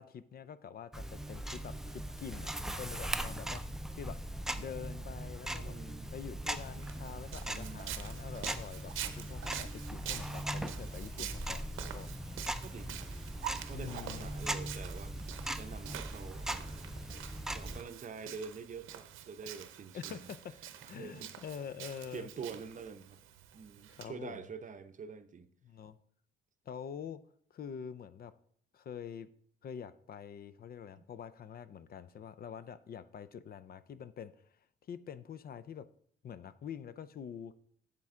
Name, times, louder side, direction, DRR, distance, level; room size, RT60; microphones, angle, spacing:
voice 1, 0.0-3.6 3.9-4.2 4.6-5.8 6.1-12.1 13.7-14.3 19.9-20.5 20.9-22.3 23.9-24.4 25.6-26.0 26.7-27.2 27.5-28.3 28.7-29.3 29.6-34.3 34.9-35.9 36.2-37.5, left 7 dB, 50° left, 14 dB, 0.5 m, -46 dB
Tick-tock, 0.9-17.8, right 1 dB, ahead, 0.5 m, -40 dB
voice 2, 5.6-6.1 7.5-8.1 10.4-10.6 12.6-13.2 13.7-17.2 17.5-20.3 20.8-21.4 22.1-23.2 23.5-25.5 31.0-31.1, right 5 dB, 40° right, 10 dB, 0.7 m, -47 dB
Walk footsteps, 6.6-24.0, right 11 dB, 90° right, 0.7 m, -47 dB
7.7 x 7.5 x 3.7 m, 0.63 s
cardioid pair, 90°, 20 cm